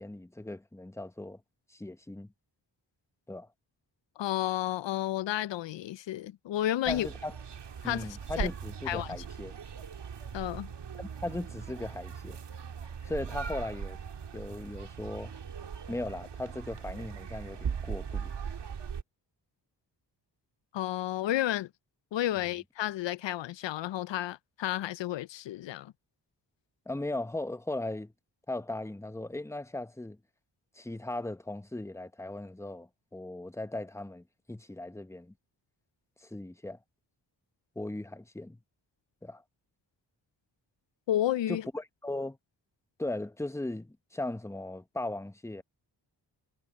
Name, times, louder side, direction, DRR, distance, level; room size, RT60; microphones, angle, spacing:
voice 1, 0.0-1.4 1.7-2.3 3.3-3.5 6.9-7.4 7.8-9.5 11.0-12.4 13.1-14.0 14.3-15.3 15.9-18.3 26.9-28.1 28.5-30.2 30.8-35.3 36.2-36.8 37.8-38.6 39.2-39.4 41.5-42.4 43.0-45.6, left 2 dB, 5° left, 1.0 m, -38 dB
voice 2, 4.2-7.1 7.8-8.1 8.4-8.5 8.9-9.2 10.3-10.7 20.7-21.7 22.1-25.9 41.1-41.6, left 13 dB, 85° left, 0.5 m, -31 dB
sound 1, 6.8-19.0, right 7 dB, 75° right, 1.9 m, -39 dB
cardioid pair, 65°, 42 cm